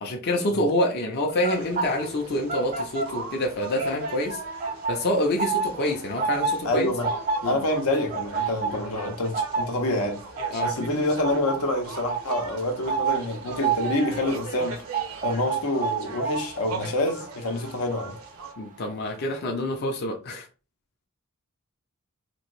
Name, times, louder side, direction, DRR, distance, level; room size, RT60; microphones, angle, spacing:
voice 1, 0.0-4.4 4.9-6.9 7.4-7.6 10.5-10.7 18.6-20.5, left 1 dB, 50° left, 0.5 m, -27 dB
sound 1, 1.3-3.5 3.7-18.6 18.9-19.2, right 5 dB, 40° right, 0.4 m, -30 dB
sound 2, 1.5-18.5, right 3 dB, 80° right, 0.7 m, -41 dB
voice 2, 6.6-7.1 7.4-10.2 10.6-14.8 15.2-18.2, left 1 dB, 85° left, 0.7 m, -27 dB
3.0 x 2.6 x 3.0 m
head